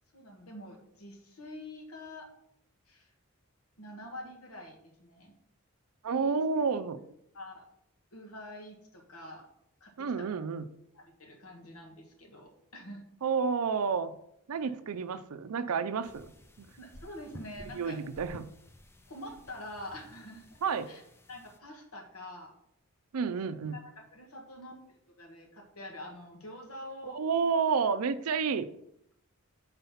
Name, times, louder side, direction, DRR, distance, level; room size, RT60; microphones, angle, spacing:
voice 1, 0.1-2.3 2.9-3.1 3.8-5.3 6.0-6.4 7.3-7.7 8.1-9.5 9.8-10.4 10.9-13.0 14.6-14.7 16.8-18.0 19.1-20.6 20.9-21.0 21.3-22.5 23.5-27.2, left 1 dB, 70° left, 2 dB, 1.5 m, -46 dB
voice 2, 6.0-7.0 10.0-10.6 13.2-14.1 14.5-16.3 16.6-16.7 17.7-18.5 20.6-20.9 23.1-23.8 27.0-28.7, right 5 dB, 80° right, 12 dB, 0.5 m, -30 dB
sound 1, 16.0-21.6, left 1 dB, 10° left, 0.4 m, -53 dB
5.6 x 4.0 x 5.6 m, 0.77 s
head